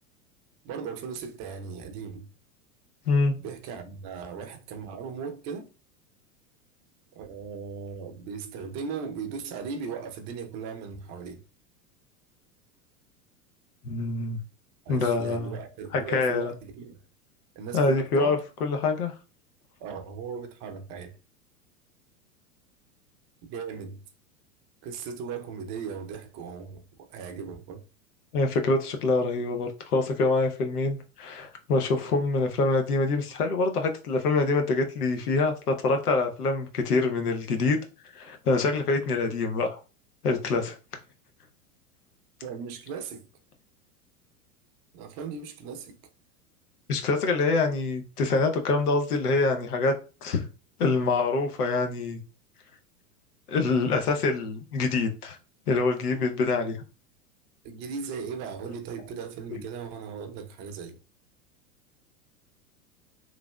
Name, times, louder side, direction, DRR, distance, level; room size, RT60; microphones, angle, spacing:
voice 1, 0.6-2.3 3.4-5.7 7.1-11.4 14.9-17.0 17.6-18.3 19.8-21.2 23.5-24.0 24.8-27.8 42.4-43.3 44.9-46.0 57.6-61.0, right 6 dB, 40° right, 0.6 m, -37 dB
voice 2, 3.1-3.4 13.8-14.4 14.9-15.6 15.9-16.5 17.7-19.1 28.3-37.8 38.1-39.8 40.2-40.8 46.9-49.9 50.2-50.5 50.8-52.2 53.5-55.4 55.7-56.8 59.5-59.6, left 3 dB, 90° left, 0.8 m, -25 dB
3.2 x 2.5 x 2.2 m
hypercardioid pair, 100°, 44 cm